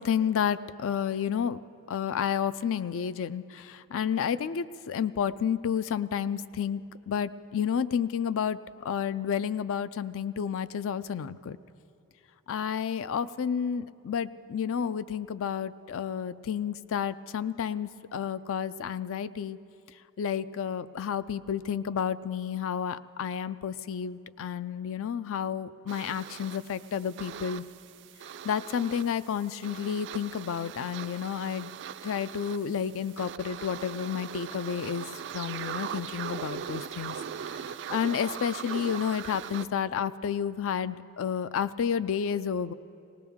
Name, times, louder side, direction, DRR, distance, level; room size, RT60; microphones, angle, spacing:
voice 1, 0.0-1.6 1.9-11.6 12.5-19.6 20.2-27.6 28.4-31.7 32.0-35.1 35.3-37.6 37.9-42.7, left 8 dB, 65° left, 15 dB, 0.4 m, -31 dB
sound 1, 25.9-39.6, right 8 dB, 55° right, 0.3 m, -40 dB
19.0 x 18.5 x 3.6 m, 2.7 s
head